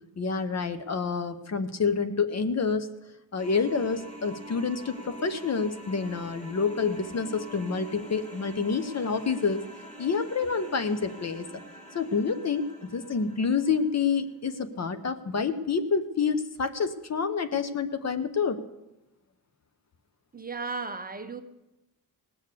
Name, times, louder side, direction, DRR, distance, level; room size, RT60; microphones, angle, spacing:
voice 1, 0.2-2.9 3.3-9.7 10.0-11.4 11.9-18.6, left 5 dB, 45° left, 11 dB, 0.8 m, -28 dB
sound 1, 3.4-14.1, equal, 20° left, 2.5 m, -46 dB
voice 2, 20.3-21.4, right 4 dB, 25° right, 7 dB, 0.8 m, -35 dB
18.5 x 6.8 x 8.3 m, 0.97 s
wide cardioid pair, 150°, 39 cm